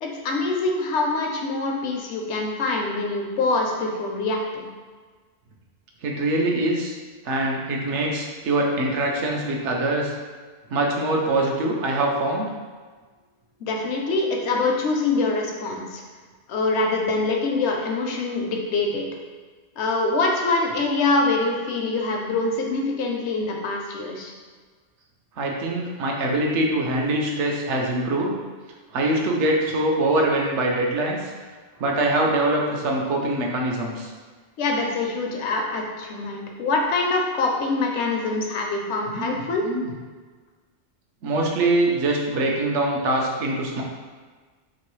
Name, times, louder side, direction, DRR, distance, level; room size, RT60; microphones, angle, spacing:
voice 1, 0.0-4.7 13.7-16.0 16.5-19.1 19.8-24.3 34.6-39.6, left 3 dB, 75° left, 1 dB, 0.9 m, -24 dB
voice 2, 6.0-7.0 7.2-10.1 10.7-12.5 25.4-28.3 28.9-31.3 31.8-34.1 39.1-39.9 41.2-43.8, right 1 dB, 75° right, 0 dB, 0.9 m, -23 dB
3.1 x 2.9 x 3.0 m, 1.4 s
omnidirectional pair, 1.2 m